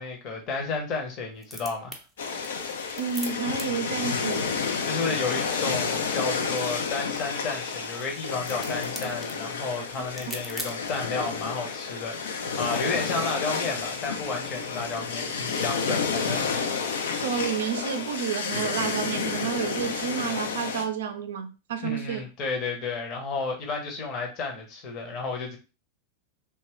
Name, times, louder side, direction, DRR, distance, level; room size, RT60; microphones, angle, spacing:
voice 1, 0.0-2.0 4.8-16.5 21.9-25.6, left 4 dB, 35° left, 0.8 m, -32 dB
sound 1, 1.3-11.1, right 1 dB, ahead, 0.6 m, -45 dB
sound 2, 2.2-20.8, left 5 dB, 60° left, 0.4 m, -30 dB
voice 2, 3.0-4.5 10.3-10.4 17.1-22.2, right 7 dB, 60° right, 0.4 m, -30 dB
2.9 x 2.2 x 2.9 m
figure-of-eight pair, 90°, 0 cm